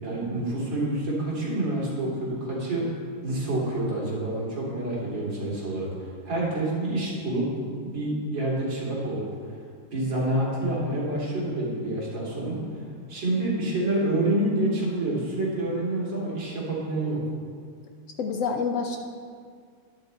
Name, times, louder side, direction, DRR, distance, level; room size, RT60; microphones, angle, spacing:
voice 1, 0.0-2.9 3.2-5.9 6.3-7.5 7.8-9.3 9.9-12.8 13.1-17.2, right 1 dB, 60° right, -6 dB, 3.5 m, -27 dB
voice 2, 18.2-19.0, left 5 dB, 80° left, 3 dB, 0.7 m, -27 dB
11.0 x 10.5 x 4.0 m, 2.1 s
omnidirectional pair, 2.2 m